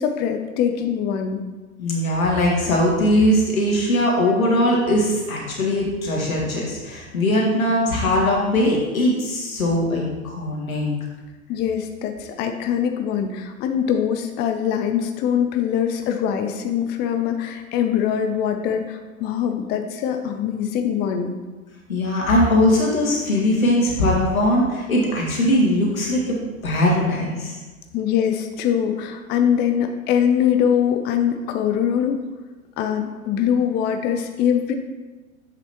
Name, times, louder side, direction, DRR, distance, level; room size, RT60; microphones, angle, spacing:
voice 1, 0.0-1.4 11.5-21.3 27.9-32.2 32.8-34.7, left 8 dB, 25° left, 6 dB, 0.5 m, -23 dB
voice 2, 1.8-10.9 21.9-26.2 26.6-27.6, left 1 dB, 80° left, -3 dB, 2.0 m, -20 dB
7.6 x 6.1 x 2.9 m, 1.3 s
figure-of-eight pair, 95°, 41 cm